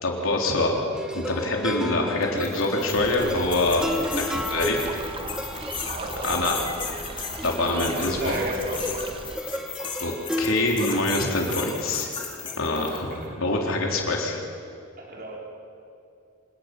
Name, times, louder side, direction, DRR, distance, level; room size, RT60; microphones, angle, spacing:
voice 1, 0.0-0.7 1.1-3.8 4.3-4.8 6.2-6.6 7.4-8.3 10.0-10.1 10.4-12.1 12.6-14.4, left 2 dB, 75° left, 0 dB, 3.6 m, -25 dB
sound 1, 0.9-11.9, equal, 5° right, 1.2 m, -34 dB
sound 2, 2.2-13.2, left 6 dB, 25° left, 2.5 m, -36 dB
sound 3, 2.9-9.4, right 2 dB, 25° right, 1.2 m, -38 dB
voice 2, 4.2-4.7 5.9-6.6 7.9-9.0 12.9-13.4 13.9-14.0 15.0-15.4, equal, 45° right, -2 dB, 4.1 m, -34 dB
26.5 x 18.5 x 6.1 m, 2.5 s
head